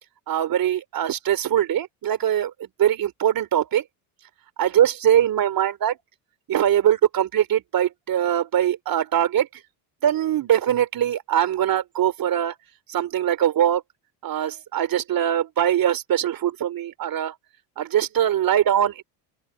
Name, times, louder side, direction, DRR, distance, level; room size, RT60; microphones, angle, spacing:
voice 1, 0.3-2.5 2.8-3.8 4.6-6.0 6.5-9.5 10.0-12.5 12.9-13.8 14.2-17.3 17.8-19.0, right 10 dB, 50° right, 3.3 m, -22 dB
open air
supercardioid pair, 80°, 45 cm